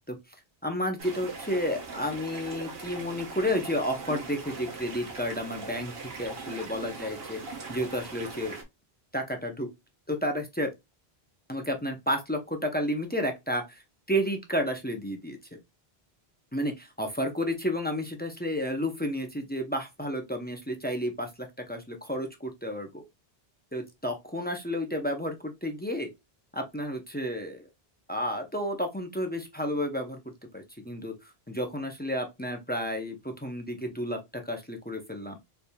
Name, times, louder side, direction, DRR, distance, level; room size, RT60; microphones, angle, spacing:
voice 1, 0.6-8.6 9.1-9.7 10.1-10.7 11.5-15.4 16.5-21.3 21.7-23.0 23.7-26.1 26.5-27.7 28.1-30.2 30.5-35.4, equal, 15° left, 0.5 m, -31 dB
sound 1, 1.0-8.6, right 4 dB, 70° right, 1.1 m, -40 dB
4.1 x 3.3 x 2.2 m
omnidirectional pair, 1.0 m